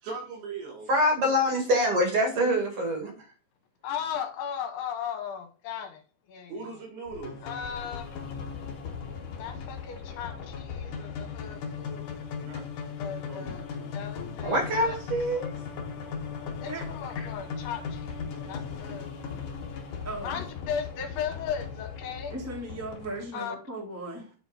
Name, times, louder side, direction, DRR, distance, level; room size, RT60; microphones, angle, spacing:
voice 1, 0.0-0.9 6.5-7.4 12.4-12.7 13.2-14.1, right 4 dB, 85° right, 5.7 m, -40 dB
voice 2, 0.9-3.1 14.4-15.5, equal, 45° right, 1.9 m, -25 dB
voice 3, 3.8-6.0 6.3-6.5 7.4-8.2 9.4-12.2 13.0-13.6 13.9-15.0 16.6-19.5 20.2-22.3 23.3-23.6, left 8 dB, 75° left, 2.8 m, -37 dB
sound 1, 7.1-23.2, left 6 dB, 55° left, 2.5 m, -38 dB
voice 4, 20.0-20.4 22.3-24.3, right 1 dB, 10° right, 0.8 m, -37 dB
10.0 x 3.9 x 5.2 m
omnidirectional pair, 5.0 m